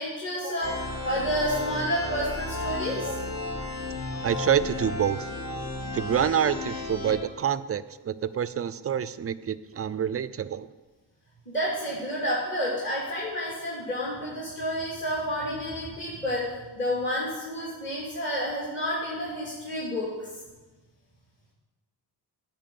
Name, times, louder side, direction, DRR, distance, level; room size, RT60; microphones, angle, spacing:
voice 1, 0.0-3.4 11.5-16.4 16.7-20.3, equal, 25° left, -6 dB, 2.7 m, -30 dB
sound 1, 0.6-7.2, left 2 dB, 50° left, 2.0 m, -33 dB
voice 2, 4.2-5.3 5.9-10.7, right 8 dB, 35° right, 15 dB, 0.4 m, -27 dB
10.5 x 4.5 x 7.7 m, 1.2 s
cardioid pair, 80°, 42 cm